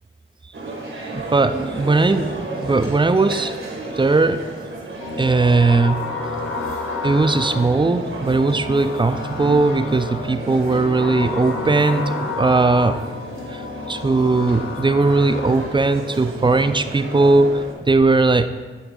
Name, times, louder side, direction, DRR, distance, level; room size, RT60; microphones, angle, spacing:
sound 1, 0.5-17.7, right 2 dB, 75° right, 1.2 m, -34 dB
voice 1, 1.1-3.5 3.9-4.4 5.2-6.0 7.0-13.0 13.5-13.6 13.9-18.5, right 3 dB, 25° right, 10 dB, 0.5 m, -18 dB
sound 2, 5.0-15.7, left 3 dB, 80° left, 0.9 m, -30 dB
10.0 x 4.2 x 3.8 m, 1.4 s
cardioid pair, 55°, 21 cm